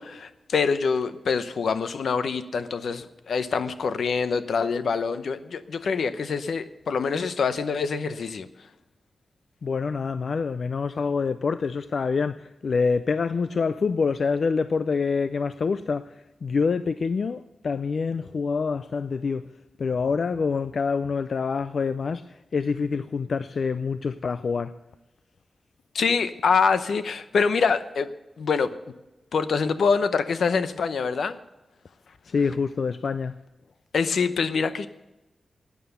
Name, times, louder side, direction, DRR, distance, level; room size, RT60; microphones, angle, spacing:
voice 1, 0.0-8.5 25.9-28.1 28.4-28.7 29.3-31.4 33.9-34.9, left 5 dB, 75° left, 0.8 m, -25 dB
voice 2, 9.6-19.5 19.8-24.8 32.2-33.4, left 5 dB, 55° left, 0.4 m, -26 dB
12.5 x 9.4 x 8.0 m
wide cardioid pair, 150°, 0 cm